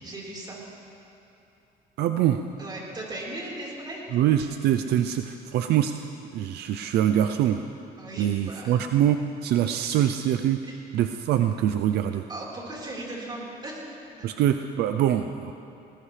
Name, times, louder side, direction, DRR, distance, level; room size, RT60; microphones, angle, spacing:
voice 1, 0.0-0.6 2.6-4.1 8.0-8.8 10.6-10.8 12.3-14.0, right 1 dB, 25° right, -5 dB, 4.3 m, -37 dB
voice 2, 2.0-2.4 4.1-7.6 8.2-10.6 10.9-12.3 14.2-15.5, right 10 dB, 75° right, 7 dB, 0.5 m, -24 dB
20.0 x 19.5 x 3.3 m, 2.8 s
cardioid pair, 110°, 17 cm